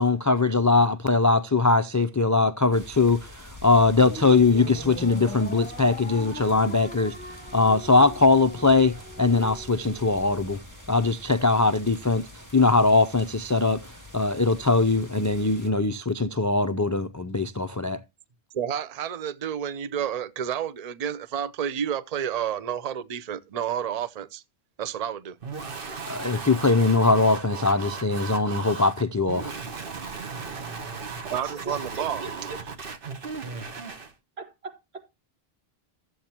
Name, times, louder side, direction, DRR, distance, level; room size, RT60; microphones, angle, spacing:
voice 1, 0.0-7.1 7.5-10.6 10.9-12.3 12.5-18.0 26.1-29.6, left 3 dB, 30° left, 0.3 m, -21 dB
sound 1, 2.7-15.7, left 1 dB, 20° right, 2.2 m, -46 dB
sound 2, 3.9-10.5, left 2 dB, 10° left, 1.1 m, -40 dB
voice 2, 18.5-24.4 24.8-25.4 31.3-32.2, right 9 dB, 45° right, 0.6 m, -30 dB
sound 3, 25.4-34.1, right 5 dB, 60° right, 1.3 m, -36 dB
voice 3, 31.4-32.6 34.4-35.1, right 3 dB, 80° right, 2.3 m, -40 dB
13.5 x 7.9 x 2.9 m
omnidirectional pair, 1.0 m